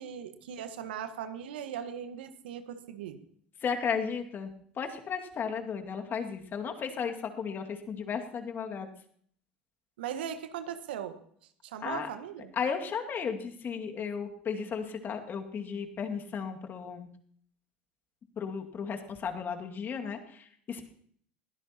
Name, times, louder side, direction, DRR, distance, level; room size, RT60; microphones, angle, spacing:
voice 1, 0.0-3.2 10.0-11.2 11.6-12.5, right 8 dB, 75° right, 9 dB, 1.4 m, -39 dB
voice 2, 3.6-4.5 4.8-8.9 11.8-12.1 12.5-17.1 18.4-20.9, left 6 dB, 35° left, 4 dB, 2.1 m, -34 dB
21.5 x 17.0 x 2.9 m, 0.64 s
hypercardioid pair, 70°, 6 cm